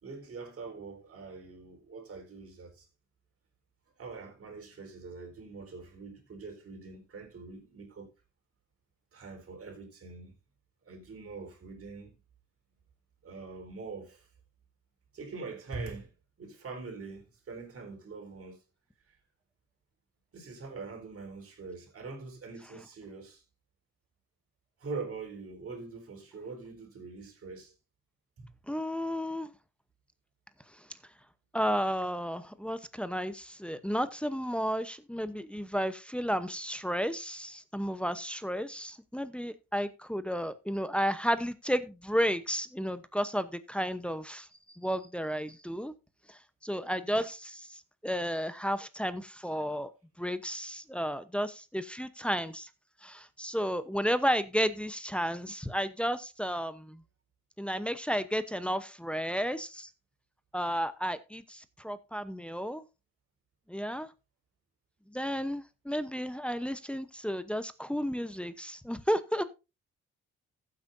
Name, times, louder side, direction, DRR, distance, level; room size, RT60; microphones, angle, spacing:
voice 1, 0.0-2.9 4.0-8.1 9.1-10.3 10.9-12.2 13.2-14.3 15.1-16.1 16.4-18.6 20.3-23.4 24.8-27.7 28.4-28.5, right 4 dB, 50° right, 4.2 m, -43 dB
voice 2, 28.7-29.5 31.5-44.5 44.7-45.9 46.3-49.9 50.2-52.7 53.0-57.0 57.6-59.9 60.5-62.8 63.7-64.1 65.1-69.4, equal, 5° left, 0.8 m, -32 dB
15.0 x 8.4 x 2.6 m
cardioid pair, 90°, 30 cm